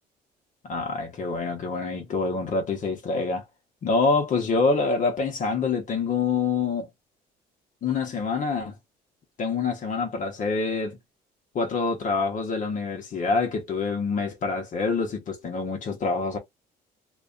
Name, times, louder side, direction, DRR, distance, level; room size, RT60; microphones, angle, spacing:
voice 1, 0.6-3.5 3.8-6.9 7.8-8.8 9.4-11.0 11.5-16.4, left 4 dB, 50° left, 0.9 m, -26 dB
2.5 x 2.2 x 2.4 m
cardioid pair, 110°, 17 cm